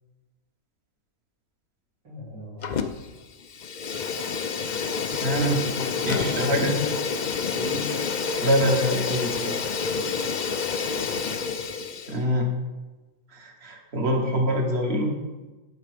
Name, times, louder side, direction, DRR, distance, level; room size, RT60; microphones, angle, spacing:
voice 1, 2.0-2.8 6.5-6.9 7.5-8.0 10.8-11.4, left 1 dB, 90° right, -10 dB, 4.1 m, -36 dB
Fire, 2.6-3.1 3.4-12.2, left 5 dB, 60° left, 0.4 m, -28 dB
voice 2, 5.2-5.6 6.1-6.7 8.4-9.7 12.1-12.5 13.3-15.1, equal, 45° right, 2 dB, 1.6 m, -25 dB
9.6 x 6.7 x 5.0 m, 1.2 s
omnidirectional pair, 1.5 m